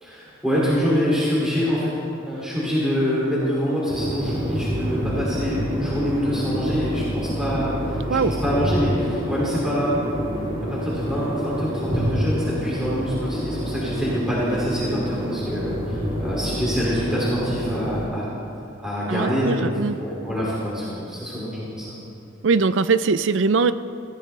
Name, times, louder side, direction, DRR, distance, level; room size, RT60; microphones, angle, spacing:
voice 1, 0.0-1.9 2.2-8.0 8.2-9.9 10.7-18.2 18.8-19.7 20.0-21.9, equal, 5° right, -8 dB, 2.7 m, -25 dB
sound 1, 3.8-18.1, equal, 30° right, 3.5 m, -27 dB
voice 2, 19.1-19.9 22.4-23.7, right 4 dB, 70° right, 13 dB, 0.5 m, -21 dB
19.5 x 14.5 x 3.3 m, 2.6 s
head